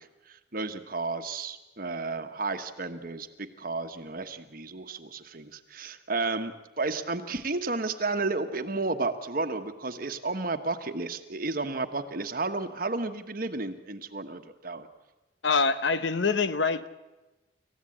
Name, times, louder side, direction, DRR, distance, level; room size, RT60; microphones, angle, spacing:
voice 1, 0.0-14.9, right 3 dB, 45° right, 1.2 m, -32 dB
voice 2, 15.4-16.9, left 4 dB, 65° left, 1.0 m, -25 dB
26.5 x 15.0 x 8.6 m
head